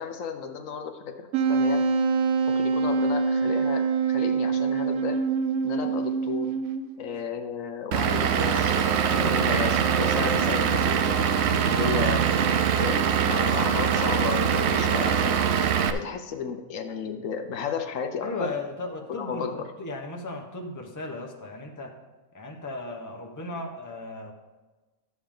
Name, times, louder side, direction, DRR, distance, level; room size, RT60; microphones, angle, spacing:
voice 1, 0.0-1.8 2.5-5.2 5.6-6.5 7.0-11.2 11.6-12.3 12.8-15.4 15.9-18.5 19.1-19.7, left 6 dB, 70° left, 6 dB, 1.1 m, -33 dB
Wind instrument woodwind instrument, 1.3-7.0, right 5 dB, 85° right, 1.1 m, -25 dB
Vehicle / Engine, 7.9-15.9, right 7 dB, 65° right, 0.7 m, -23 dB
voice 2, 9.0-9.4 9.8-10.0 18.2-21.9 22.3-24.3, left 2 dB, 15° left, 1 dB, 0.8 m, -36 dB
12.0 x 7.1 x 3.7 m, 1.2 s
omnidirectional pair, 1.4 m